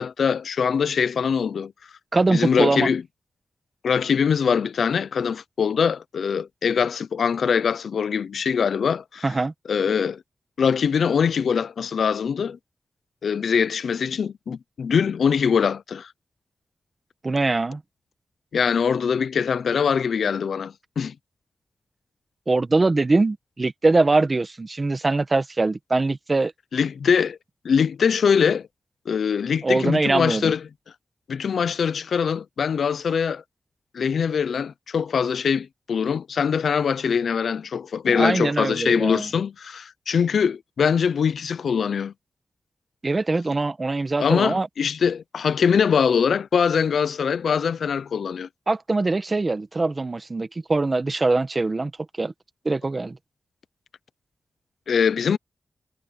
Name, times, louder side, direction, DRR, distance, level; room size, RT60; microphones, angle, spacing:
voice 1, 0.0-1.7 2.3-3.0 3.8-9.3 9.7-10.2 10.6-12.6 13.2-16.1 18.5-21.1 26.7-27.4 27.6-28.7 29.1-30.6 31.3-33.4 33.9-42.1 44.2-48.5 54.9-55.4, left 6 dB, 85° left, 0.6 m, -23 dB
voice 2, 2.1-2.9 9.2-9.5 17.2-17.8 22.5-26.5 29.6-30.5 38.1-39.3 43.0-44.7 48.7-51.9 52.2-52.3 52.6-53.2, right 3 dB, 30° right, 1.5 m, -22 dB
wide cardioid pair, 105°, 0 cm